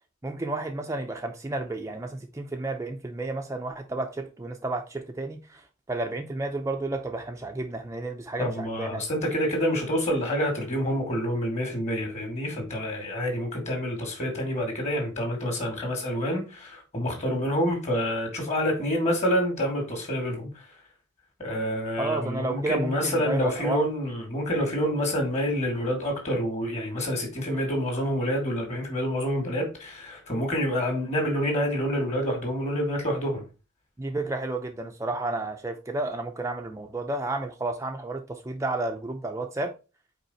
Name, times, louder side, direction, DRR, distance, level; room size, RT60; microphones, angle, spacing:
voice 1, 0.2-9.0 22.0-23.9 34.0-39.7, right 2 dB, 15° right, 0.5 m, -31 dB
voice 2, 8.4-20.5 21.4-33.4, equal, 35° left, 2.4 m, -27 dB
5.4 x 4.7 x 4.3 m
head